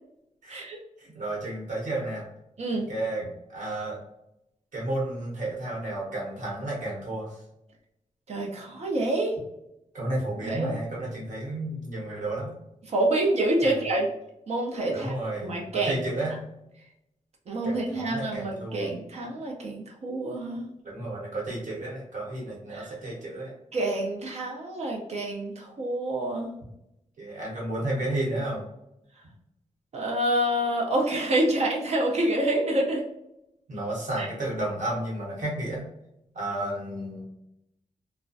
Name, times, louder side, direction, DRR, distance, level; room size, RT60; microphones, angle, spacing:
voice 1, 1.0-2.3 2.7-4.0 4.7-7.3 9.9-12.6 13.6-13.7 14.9-16.4 17.6-18.9 20.8-23.5 27.2-28.6 33.7-35.9 36.3-37.2, right 1 dB, 70° right, -3 dB, 1.0 m, -32 dB
voice 2, 8.3-9.3 10.4-10.7 12.9-14.1 14.5-15.1 15.4-15.9 17.5-20.7 22.7-22.9 23.7-26.5 29.9-33.0 34.2-34.3, right 1 dB, 55° right, 0 dB, 0.5 m, -27 dB
2.4 x 2.0 x 2.5 m, 0.84 s
wide cardioid pair, 170°, 13 cm